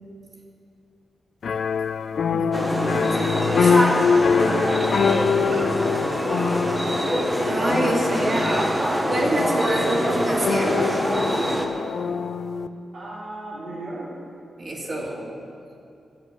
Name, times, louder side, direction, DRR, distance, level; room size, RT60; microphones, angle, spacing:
sound 1, 1.4-12.7, left 6 dB, 55° left, 0.4 m, -24 dB
voice 1, 2.3-3.3 3.6-4.6 5.5-6.0 6.9-7.0 7.4-11.0 14.6-15.3, right 1 dB, 35° right, -3 dB, 2.3 m, -28 dB
sound 2, 2.5-11.7, right 1 dB, 10° right, 1.0 m, -25 dB
voice 2, 6.0-6.5 9.9-10.3 12.9-14.1, right 2 dB, 80° right, -6 dB, 2.7 m, -37 dB
12.0 x 7.6 x 9.3 m, 2.5 s
wide cardioid pair, 175°, 0 cm